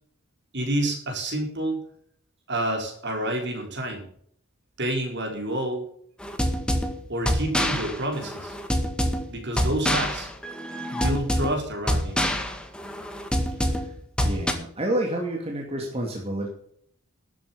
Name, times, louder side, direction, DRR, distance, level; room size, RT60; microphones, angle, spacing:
voice 1, 0.5-1.8 2.5-4.1 4.8-5.9 7.1-8.5 9.3-10.3 10.9-12.2, right 1 dB, 55° right, 2 dB, 4.3 m, -28 dB
sound 1, 6.2-14.5, equal, 5° left, 1.8 m, -26 dB
voice 2, 14.2-16.5, right 1 dB, 30° right, 0 dB, 2.5 m, -29 dB
12.5 x 8.5 x 7.0 m, 0.64 s
head